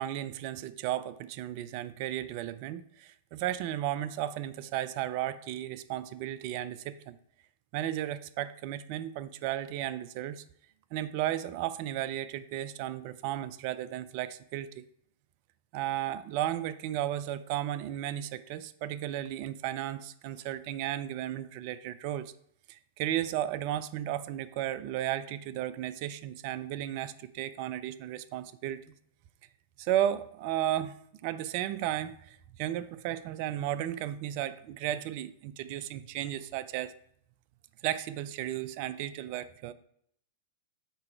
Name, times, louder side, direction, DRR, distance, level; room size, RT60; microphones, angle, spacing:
voice 1, 0.0-7.2 7.7-10.4 10.9-14.8 15.7-22.3 22.7-28.8 29.8-31.0 31.2-36.9 37.8-39.7, right 12 dB, 50° right, 14 dB, 0.4 m, -34 dB
6.8 x 4.8 x 4.5 m, 0.70 s
hypercardioid pair, 100°, 0 cm